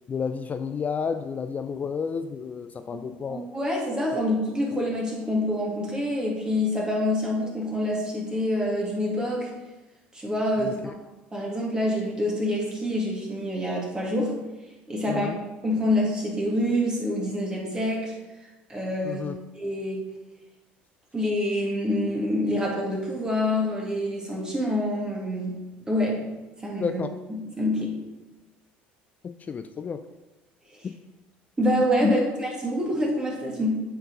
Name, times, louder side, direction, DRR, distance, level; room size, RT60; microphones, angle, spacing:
voice 1, 0.1-3.5 4.1-4.2 10.6-10.7 15.1-15.4 19.0-19.4 26.8-27.2 29.2-30.1 32.0-32.2, left 6 dB, 35° left, 10 dB, 0.4 m, -30 dB
voice 2, 3.3-9.5 10.1-10.9 11.3-14.3 14.9-15.3 15.6-18.1 18.7-19.2 19.6-20.0 21.1-25.6 25.9-26.2 26.6-27.0 27.6-28.0 30.7-30.9 31.6-33.8, left 1 dB, 15° right, -2 dB, 2.2 m, -26 dB
8.0 x 4.4 x 4.0 m, 1.1 s
hypercardioid pair, 75°, 5 cm